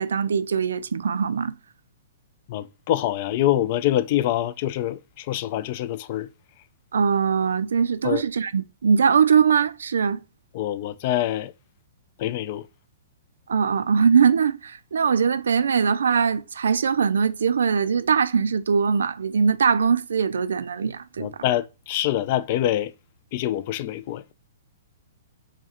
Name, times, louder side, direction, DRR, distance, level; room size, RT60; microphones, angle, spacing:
voice 1, 0.0-1.5 6.9-10.2 13.5-21.3, right 6 dB, 85° right, 0.3 m, -21 dB
voice 2, 2.5-6.3 8.0-8.2 10.5-11.5 12.2-12.6 21.2-22.9 23.3-24.3, left 13 dB, 45° left, 0.3 m, -25 dB
4.6 x 2.1 x 2.9 m
hypercardioid pair, 135°, 0 cm